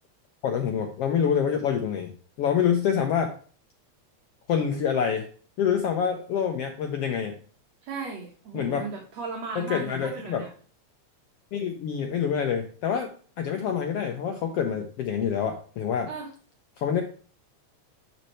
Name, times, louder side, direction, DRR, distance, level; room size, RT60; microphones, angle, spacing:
voice 1, 0.4-2.1 2.4-3.3 4.5-5.3 5.6-7.3 8.5-8.9 9.5-10.5 11.5-13.1 13.4-16.1 16.8-17.0, left 7 dB, 70° left, 4 dB, 1.6 m, -26 dB
voice 2, 7.8-10.5 16.1-16.3, right 5 dB, 65° right, 0 dB, 2.3 m, -36 dB
10.5 x 4.4 x 3.1 m, 0.40 s
omnidirectional pair, 3.3 m